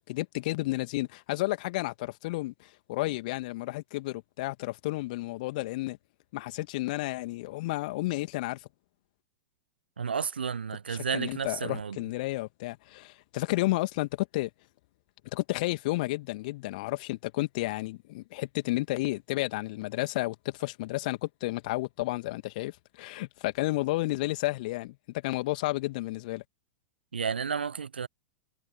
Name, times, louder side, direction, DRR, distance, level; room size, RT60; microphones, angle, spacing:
voice 1, 0.1-6.0 6.3-8.6 10.9-14.5 15.3-26.4, left 20 dB, 50° left, 2.6 m, -32 dB
voice 2, 10.0-12.0 27.1-28.1, right 6 dB, 75° right, 0.8 m, -32 dB
figure-of-eight pair, 90°, 6 cm